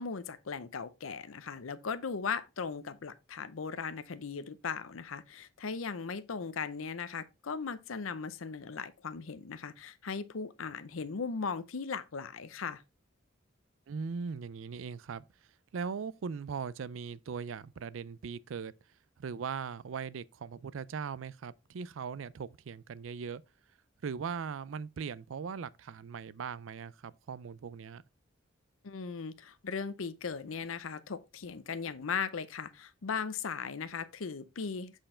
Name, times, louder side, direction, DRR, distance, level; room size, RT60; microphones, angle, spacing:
voice 1, 0.0-12.8 28.8-34.9, left 5 dB, 90° left, 0.6 m, -38 dB
voice 2, 13.9-15.3 15.7-18.7 19.2-23.4 24.0-28.0, right 6 dB, 75° right, 0.4 m, -39 dB
7.6 x 4.5 x 4.3 m
head